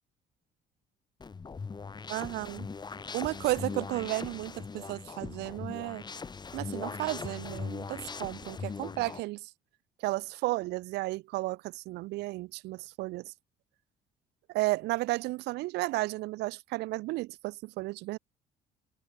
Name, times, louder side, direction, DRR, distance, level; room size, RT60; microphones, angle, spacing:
sound 1, 1.2-9.2, left 5 dB, 25° left, 1.7 m, -40 dB
voice 1, 2.1-2.7 3.1-6.0 6.5-9.5 10.0-13.3 14.5-18.2, right 20 dB, 85° right, 1.3 m, -33 dB
cardioid pair, 110°, 17 cm